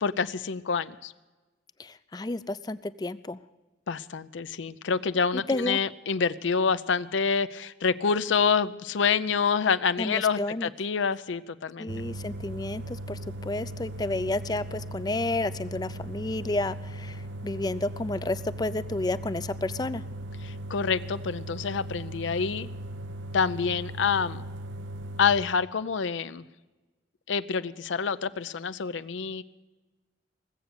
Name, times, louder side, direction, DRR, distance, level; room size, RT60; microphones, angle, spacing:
voice 1, 0.0-1.1 3.9-11.9 20.4-22.7 23.3-24.4 25.2-26.4 27.3-29.4, left 5 dB, 85° left, 14 dB, 0.5 m, -27 dB
voice 2, 1.8-3.4 5.3-5.8 10.0-10.7 11.8-20.0, left 2 dB, 20° left, 15 dB, 0.4 m, -31 dB
sound 1, 11.9-25.4, right 1 dB, 90° right, 0.8 m, -38 dB
20.0 x 8.1 x 8.0 m, 1.2 s
head